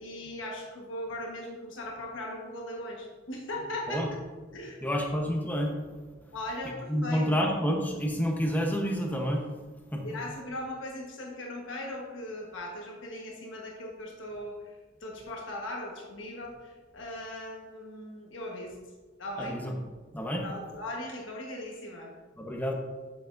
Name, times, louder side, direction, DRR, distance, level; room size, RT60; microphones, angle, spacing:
voice 1, 0.0-4.2 4.5-4.9 6.3-7.3 10.0-18.7 19.2-19.6 20.4-22.1, left 1 dB, 80° left, -1 dB, 1.3 m, -39 dB
voice 2, 4.8-5.7 6.9-9.4 9.9-10.0 19.4-19.7 20.1-20.4 22.4-22.7, equal, 10° left, 1 dB, 0.9 m, -28 dB
8.1 x 6.9 x 2.6 m, 1.4 s
head